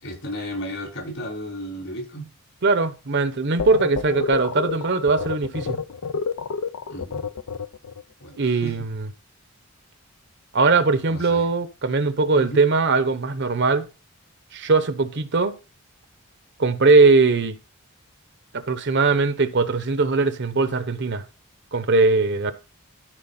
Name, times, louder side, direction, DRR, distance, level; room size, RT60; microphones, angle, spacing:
voice 1, 0.0-2.3 6.9-7.2 8.2-8.7 11.1-11.5 12.3-12.6, equal, 65° left, 4.9 m, -33 dB
voice 2, 2.6-5.8 8.4-9.1 10.5-13.9 14.5-15.5 16.6-17.6 18.5-21.2 21.7-22.5, right 3 dB, 50° right, 0.8 m, -20 dB
sound 1, 3.6-8.0, left 5 dB, 80° left, 0.6 m, -29 dB
13.5 x 4.7 x 4.2 m
head